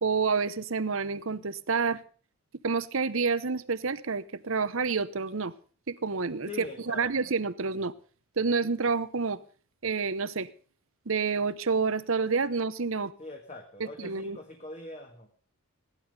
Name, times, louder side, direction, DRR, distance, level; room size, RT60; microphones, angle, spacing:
voice 1, 0.0-2.0 2.6-5.5 5.9-7.9 8.4-9.4 9.8-10.5 11.1-13.1 13.8-14.4, right 4 dB, 60° right, 15 dB, 0.9 m, -28 dB
voice 2, 6.5-7.3 13.2-15.3, left 2 dB, 30° left, 3 dB, 1.7 m, -43 dB
16.5 x 11.5 x 5.3 m, 0.41 s
head